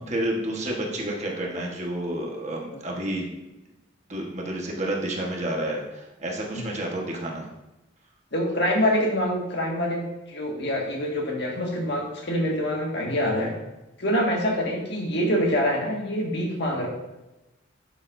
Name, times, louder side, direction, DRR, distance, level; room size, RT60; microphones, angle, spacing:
voice 1, 0.0-3.3 4.1-7.5, right 1 dB, 35° right, -1 dB, 1.4 m, -30 dB
voice 2, 8.3-13.5 14.0-16.9, equal, 55° left, -1 dB, 1.8 m, -25 dB
11.5 x 7.0 x 2.7 m, 1.0 s
head